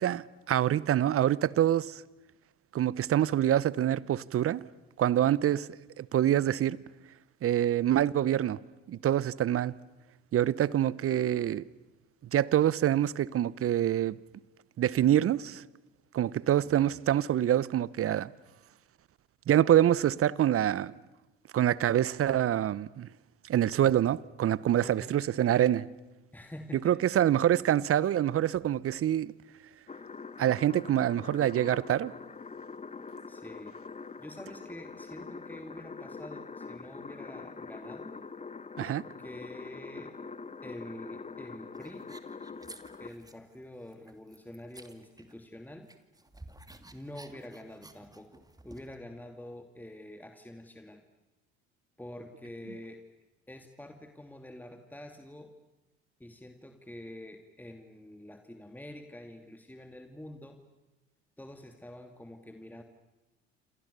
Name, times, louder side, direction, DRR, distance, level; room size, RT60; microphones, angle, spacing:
voice 1, 0.0-2.0 2.7-4.6 5.0-5.7 6.0-6.8 7.4-8.6 8.9-9.7 10.3-11.6 12.3-14.2 14.8-15.6 16.1-18.3 19.5-20.9 21.5-23.1 23.4-25.9 26.8-29.3 30.4-32.1 38.8-39.0, right 11 dB, 45° right, 1.0 m, -26 dB
voice 2, 24.8-25.2 26.3-27.0 33.3-33.8 34.2-38.2 39.2-40.1 40.6-42.1 43.0-45.9 46.9-51.0 52.0-53.0 53.5-55.5 56.2-60.6 61.4-62.8, left 1 dB, 5° left, 2.5 m, -46 dB
sound 1, 29.9-43.1, left 4 dB, 20° left, 1.1 m, -44 dB
sound 2, 41.7-43.6 43.9-45.6 45.9-49.0, right 2 dB, 10° right, 2.6 m, -53 dB
28.0 x 27.5 x 6.9 m
hypercardioid pair, 60°, 32 cm